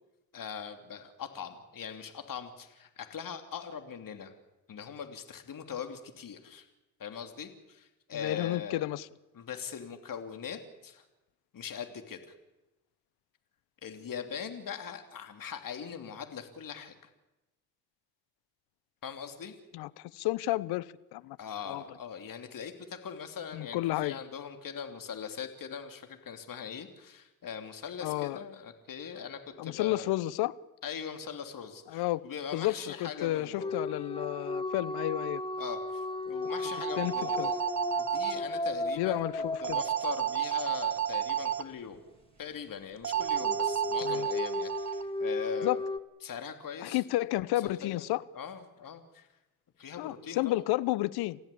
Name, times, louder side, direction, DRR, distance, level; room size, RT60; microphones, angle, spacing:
voice 1, 0.3-4.3 4.7-6.7 7.0-8.8 9.3-11.0 11.5-12.2 13.8-16.9 19.0-19.5 21.4-30.1 30.8-33.8 35.6-37.6 38.0-39.2 39.6-42.0 42.4-45.8 46.2-47.0 47.6-48.0 48.3-49.3 49.8-50.4, left 7 dB, 55° left, 6 dB, 3.1 m, -41 dB
voice 2, 8.1-9.1 19.7-21.4 21.7-21.8 23.5-24.2 28.0-28.4 29.6-30.5 31.9-32.2 32.5-35.4 37.0-37.5 39.0-39.8 44.0-44.3 45.6-45.8 46.8-48.2 50.0-51.4, left 16 dB, 80° left, 19 dB, 0.9 m, -31 dB
sound 1, 33.6-40.5 43.1-46.0, left 2 dB, 15° left, 2.0 m, -35 dB
sound 2, 36.4-38.4 39.6-41.6 43.0-45.0, right 10 dB, 45° right, 1.5 m, -32 dB
29.0 x 15.5 x 8.6 m, 1.0 s
hypercardioid pair, 50°, 38 cm